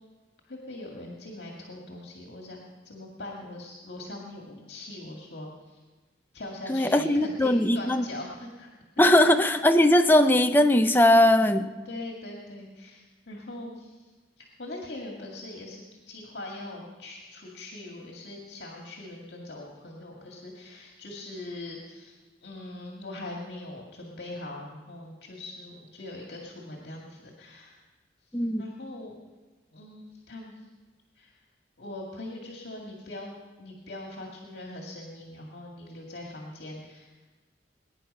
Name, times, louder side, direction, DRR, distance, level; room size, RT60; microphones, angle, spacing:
voice 1, 0.5-5.8 6.3-8.7 9.1-9.3 11.9-14.1 14.4-27.8 28.3-29.2 29.7-30.7 31.2-31.3 31.8-33.3 33.6-37.1, left 2 dB, 60° left, 0 dB, 2.2 m, -41 dB
voice 2, 6.7-8.1 9.0-11.7 28.3-28.6, left 1 dB, 10° left, 7 dB, 0.6 m, -20 dB
20.5 x 10.0 x 5.6 m, 1.3 s
head